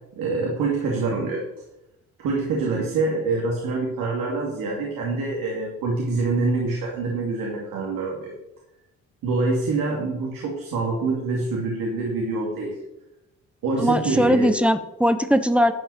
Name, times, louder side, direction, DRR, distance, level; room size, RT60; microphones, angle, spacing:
voice 1, 0.2-1.4 2.2-8.3 9.2-12.8 13.6-14.5, right 3 dB, 85° right, -1 dB, 2.4 m, -25 dB
voice 2, 13.8-15.7, equal, 5° right, 10 dB, 0.9 m, -20 dB
11.0 x 5.4 x 7.1 m, 0.91 s
cardioid pair, 90°, 33 cm